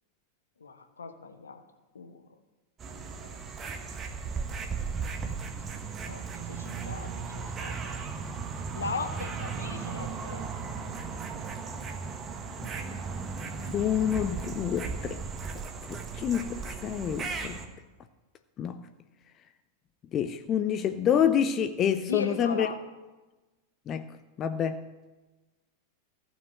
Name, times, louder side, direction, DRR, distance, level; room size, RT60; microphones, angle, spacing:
voice 1, 0.6-1.6 1.9-2.3 2.8-3.4 5.7-5.8 6.0-8.3 8.7-10.5 22.0-22.8, left 4 dB, 70° left, 8 dB, 1.1 m, -39 dB
sound 1, 2.8-17.7, right 5 dB, 25° right, 1.3 m, -36 dB
voice 2, 13.7-15.2 15.9-17.6 18.6-18.8 20.1-22.7 23.9-24.1 24.4-24.9, left 9 dB, 30° left, 10 dB, 0.6 m, -28 dB
15.0 x 6.5 x 8.2 m, 1.2 s
figure-of-eight pair, 90°, 0 cm